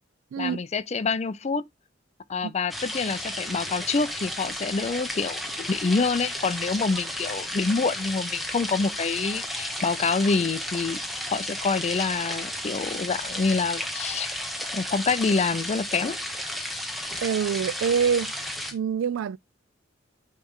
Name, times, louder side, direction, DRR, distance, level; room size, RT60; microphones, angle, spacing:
voice 1, 0.4-1.7 2.3-11.0 11.3-14.3 14.7-16.2, left 4 dB, 35° left, 0.4 m, -26 dB
sound 1, 2.7-18.7, left 1 dB, ahead, 1.1 m, -33 dB
voice 2, 17.2-18.3 18.7-19.4, right 7 dB, 80° right, 0.3 m, -25 dB
9.2 x 3.2 x 3.6 m
head